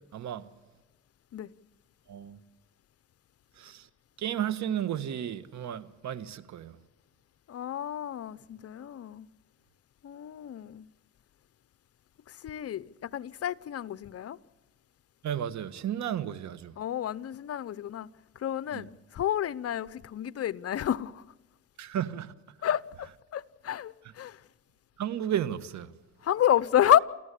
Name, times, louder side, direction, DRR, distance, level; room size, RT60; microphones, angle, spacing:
voice 1, 0.1-0.5 2.1-2.4 3.6-3.9 4.2-6.7 15.2-16.7 18.7-18.8 21.8-22.3 25.0-25.9, right 10 dB, 65° right, 1.4 m, -33 dB
voice 2, 7.5-9.3 10.0-10.9 12.3-14.4 16.8-18.1 18.4-21.2 22.6-24.4 26.2-27.0, left 10 dB, 55° left, 0.8 m, -29 dB
28.5 x 14.5 x 8.4 m
cardioid pair, 90°, 30 cm